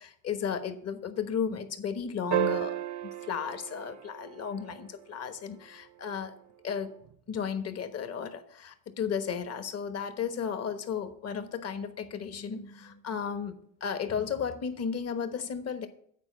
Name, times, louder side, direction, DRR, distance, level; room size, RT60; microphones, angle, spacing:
voice 1, 0.0-2.8 3.0-6.3 6.6-6.9 7.3-15.9, left 7 dB, 50° left, 9 dB, 1.2 m, -34 dB
sound 1, 2.3-4.8 7.1-7.2, right 14 dB, 55° right, 0.6 m, -33 dB
9.0 x 4.6 x 7.4 m, 0.66 s
cardioid pair, 100°, 32 cm